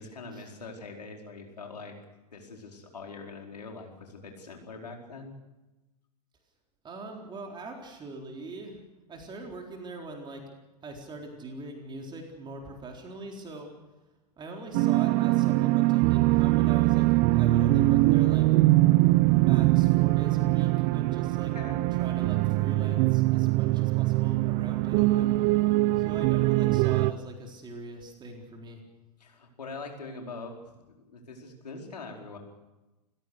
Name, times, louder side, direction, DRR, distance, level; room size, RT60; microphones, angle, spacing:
voice 1, 0.0-1.9 2.3-5.3 21.4-21.9 29.2-32.4, left 3 dB, 75° left, 2 dB, 4.7 m, -43 dB
voice 2, 6.8-8.8 9.1-10.4 10.8-13.7 14.4-18.5 19.3-21.5 21.9-25.3 26.0-28.8, right 2 dB, 20° right, 2 dB, 4.1 m, -42 dB
sound 1, 14.7-27.1, right 19 dB, 40° right, 0.8 m, -22 dB
29.0 x 16.5 x 6.6 m, 1.0 s
figure-of-eight pair, 100°, 21 cm